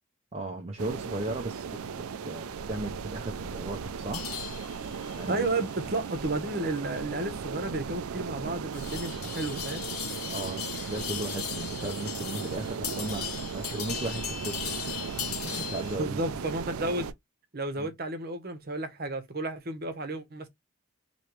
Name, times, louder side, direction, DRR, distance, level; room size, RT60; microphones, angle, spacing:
voice 1, 0.3-1.7 2.2-4.3 5.2-5.5 10.3-15.1 15.4-16.4 17.8-17.9, right 2 dB, 30° right, 0.5 m, -36 dB
sound 1, 0.8-17.1, right 6 dB, 80° right, 0.5 m, -37 dB
sound 2, 4.1-16.0, left 9 dB, 80° left, 1.1 m, -39 dB
voice 2, 5.3-9.8 16.0-17.1 17.5-20.5, right 2 dB, 45° right, 0.9 m, -32 dB
4.5 x 3.1 x 3.1 m
head